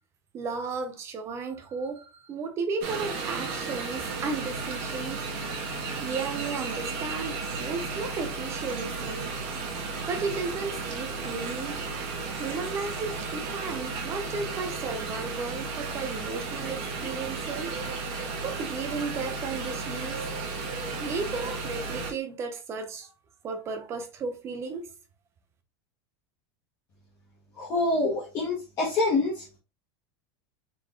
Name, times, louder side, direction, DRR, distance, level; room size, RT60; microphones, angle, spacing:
voice 1, 0.3-5.2 6.0-9.3 10.1-11.8 12.4-17.7 18.4-20.2 21.0-23.1 23.4-24.9, right 4 dB, 20° right, 0.6 m, -34 dB
sound 1, 2.8-22.1, right 4 dB, 45° right, 1.1 m, -34 dB
voice 2, 27.6-29.4, left 2 dB, 25° left, 1.1 m, -26 dB
4.6 x 3.9 x 2.3 m
supercardioid pair, 175°, 14 cm